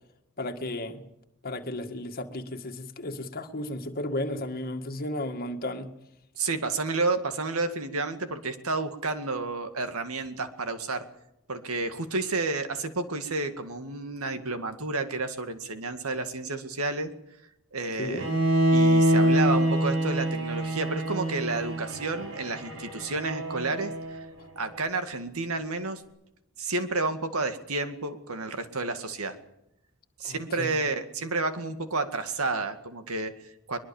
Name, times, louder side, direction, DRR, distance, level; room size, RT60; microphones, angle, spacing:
voice 1, 0.4-1.0 1.4-5.9 18.0-18.2 30.2-30.8, left 1 dB, 45° left, 5 dB, 1.9 m, -34 dB
voice 2, 6.4-11.0 11.5-17.1 17.7-18.3 18.7-24.3 24.6-26.0 26.6-29.4 30.2-33.8, right 3 dB, 85° right, 8 dB, 2.1 m, -31 dB
Bowed string instrument, 18.2-24.2, right 1 dB, 70° right, 5.1 m, -25 dB
22.5 x 21.5 x 7.2 m, 0.84 s
head